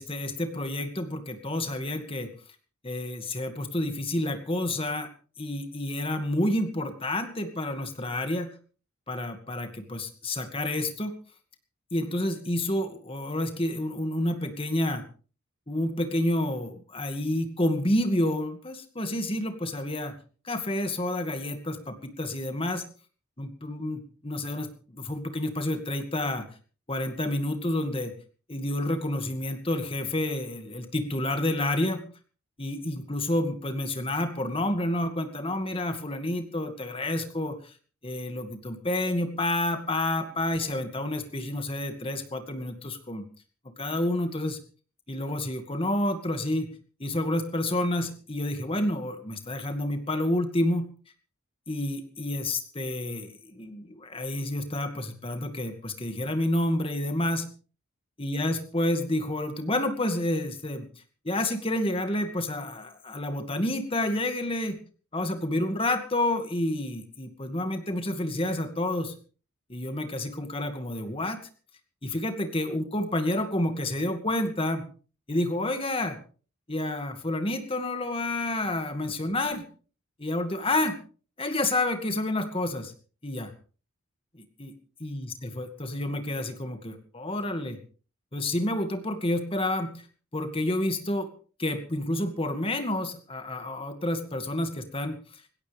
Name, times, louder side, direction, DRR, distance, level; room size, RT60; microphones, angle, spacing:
voice 1, 0.0-2.3 2.8-5.1 5.4-8.5 9.1-11.1 11.9-15.1 15.7-20.2 20.4-22.8 23.4-26.4 26.9-28.1 28.5-32.0 32.6-37.7 38.0-43.2 43.8-44.6 45.1-46.7 47.0-50.8 51.7-57.5 58.2-60.8 61.2-64.8 65.1-69.1 69.7-71.4 72.0-74.9 75.3-76.2 76.7-79.6 80.2-81.0 81.4-82.9 83.2-83.5 84.3-84.7 85.0-87.8 88.3-90.0 90.3-91.3 91.6-95.4, left 1 dB, 25° left, 7 dB, 2.2 m, -29 dB
20.0 x 17.0 x 3.5 m, 0.40 s
head